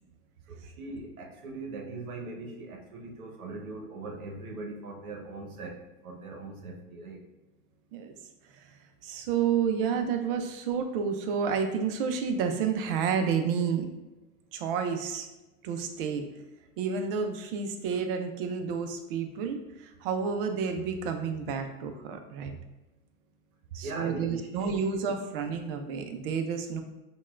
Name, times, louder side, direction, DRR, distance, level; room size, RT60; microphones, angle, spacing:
voice 1, 0.5-7.2 23.8-24.8, right 2 dB, 80° right, 1 dB, 0.9 m, -40 dB
voice 2, 9.0-13.9 14.5-15.3 15.6-16.2 16.8-22.5 23.7-26.8, right 6 dB, 40° right, 6 dB, 0.5 m, -30 dB
5.3 x 2.2 x 2.4 m, 1.0 s
hypercardioid pair, 125°, 43 cm